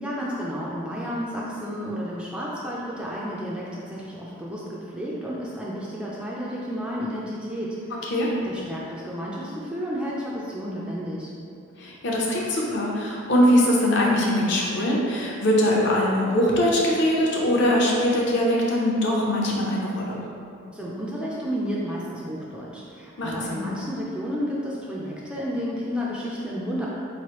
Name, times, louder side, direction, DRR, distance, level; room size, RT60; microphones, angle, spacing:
voice 1, 0.0-7.8 8.4-11.3 20.7-26.9, equal, 5° right, -6 dB, 0.3 m, -31 dB
voice 2, 11.8-20.2 23.2-23.7, left 1 dB, 55° left, -3 dB, 0.6 m, -22 dB
4.2 x 3.1 x 3.0 m, 2.5 s
head